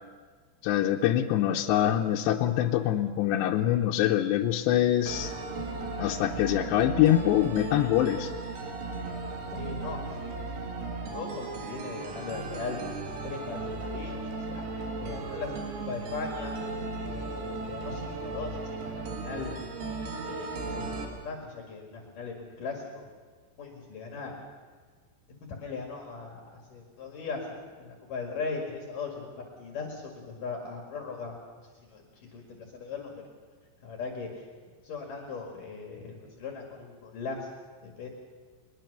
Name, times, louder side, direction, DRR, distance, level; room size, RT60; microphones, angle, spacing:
voice 1, 0.6-5.3 5.6-8.3, left 12 dB, 80° left, 2 dB, 2.9 m, -25 dB
sound 1, 5.1-21.1, right 3 dB, 65° right, 4.0 m, -36 dB
voice 2, 9.5-10.4 10.8-12.8 13.2-14.2 14.5-16.6 17.1-19.5 20.2-20.5 20.8-23.1 23.6-24.4 25.5-33.3 33.8-34.5 34.8-37.5 37.8-38.1, left 4 dB, 55° left, 1 dB, 3.3 m, -39 dB
22.0 x 21.0 x 6.7 m, 1.5 s
omnidirectional pair, 5.2 m